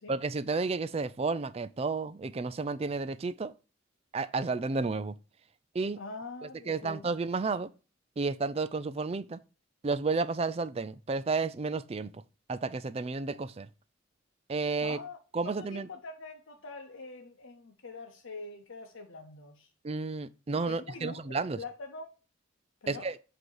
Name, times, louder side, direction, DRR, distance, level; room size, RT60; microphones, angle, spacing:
voice 1, 0.1-3.5 4.1-5.2 5.7-6.0 6.7-7.7 8.2-9.4 9.8-12.2 12.5-13.7 14.5-15.0 15.3-15.9 19.8-21.6 22.9-23.2, right 4 dB, 30° right, 0.4 m, -32 dB
voice 2, 6.0-7.1 14.8-15.2 15.4-19.7 20.5-22.1 22.8-23.1, left 3 dB, 80° left, 0.9 m, -44 dB
7.9 x 2.9 x 4.6 m
head